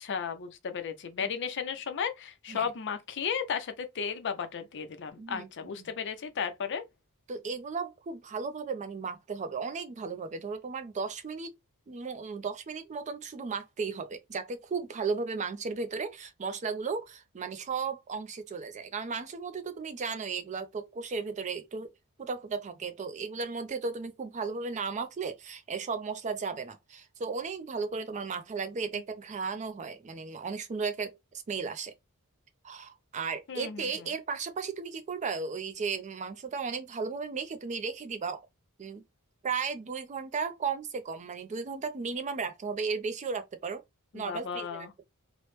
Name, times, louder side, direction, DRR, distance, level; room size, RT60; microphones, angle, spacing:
voice 1, 0.0-6.8 28.9-29.0 33.5-34.1 44.1-44.9, left 6 dB, 55° left, 0.5 m, -34 dB
voice 2, 5.2-5.9 7.3-11.5 11.9-21.9 22.2-31.2 31.5-31.9 32.6-38.4 38.8-39.0 39.4-43.8 44.1-45.1, right 5 dB, 30° right, 0.4 m, -35 dB
3.0 x 2.0 x 3.0 m
head